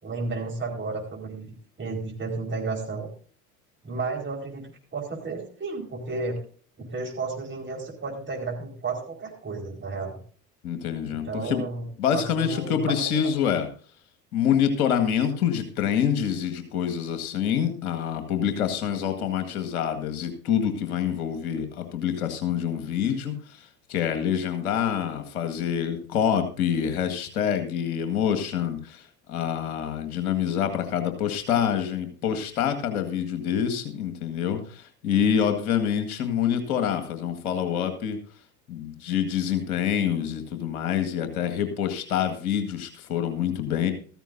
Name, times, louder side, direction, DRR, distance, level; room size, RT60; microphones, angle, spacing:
voice 1, 0.0-3.1 3.8-6.4 6.8-10.2 11.2-11.8 12.1-13.0 13.2-13.5, right 3 dB, 25° right, 0 dB, 4.8 m, -33 dB
voice 2, 10.6-11.6 12.0-13.7 14.3-23.4 23.9-29.0 29.3-38.2 38.7-43.9, left 8 dB, 70° left, 7 dB, 1.9 m, -26 dB
14.5 x 14.0 x 2.7 m, 0.42 s
figure-of-eight pair, 65°, 44 cm